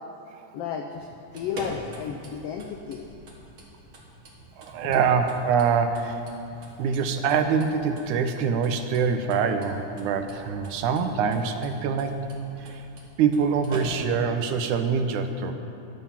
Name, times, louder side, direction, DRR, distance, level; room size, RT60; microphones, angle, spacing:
voice 1, 0.5-3.0 5.0-5.1, left 7 dB, 85° left, 4 dB, 1.3 m, -33 dB
sound 1, 1.2-14.3, right 1 dB, 50° right, 2.2 m, -45 dB
voice 2, 4.6-6.2 6.8-12.2 12.6-12.8 13.2-15.5, right 6 dB, 80° right, 7 dB, 2.2 m, -24 dB
13.5 x 10.5 x 5.7 m, 2.7 s
omnidirectional pair, 3.5 m